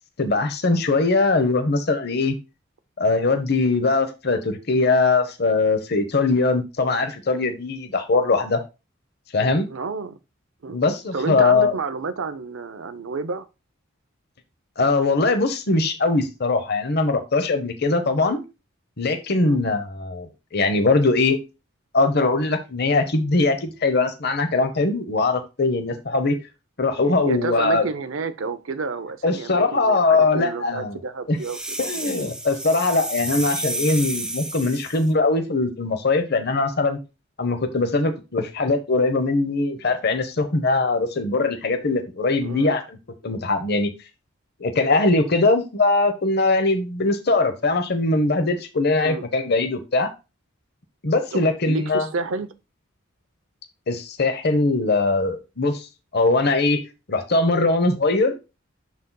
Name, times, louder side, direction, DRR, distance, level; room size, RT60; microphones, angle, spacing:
voice 1, 0.2-2.4 3.0-8.6 9.3-9.7 10.7-11.7 14.8-18.4 19.0-21.4 21.9-26.4 26.8-27.9 29.2-31.0 31.3-31.4 31.8-37.0 37.4-42.8 43.2-43.9 44.6-50.1 51.0-52.0 53.9-55.9 56.1-56.8 57.1-58.3, left 3 dB, 50° left, 0.9 m, -21 dB
voice 2, 9.7-10.2 10.6-10.8 11.1-13.5 19.4-19.6 27.0-31.6 42.4-42.8 49.0-49.3 51.3-52.5, right 4 dB, 75° right, 0.7 m, -30 dB
sound 1, 31.4-35.1, right 1 dB, 5° right, 0.5 m, -31 dB
11.5 x 4.0 x 2.3 m
head